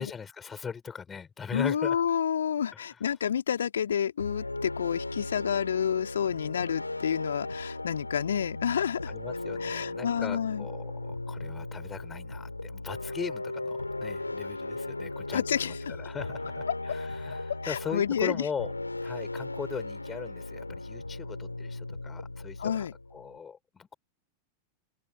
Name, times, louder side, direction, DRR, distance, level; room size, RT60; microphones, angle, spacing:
voice 1, 0.0-2.0 2.7-3.0 9.1-18.7 19.0-23.9, left 6 dB, 20° left, 5.9 m, -40 dB
voice 2, 1.5-9.1 9.6-10.7 15.3-15.8 17.6-18.5 22.6-22.9, left 8 dB, 65° left, 2.8 m, -29 dB
sound 1, 4.2-23.4, left 2 dB, 85° left, 4.5 m, -37 dB
figure-of-eight pair, 90°, 0 cm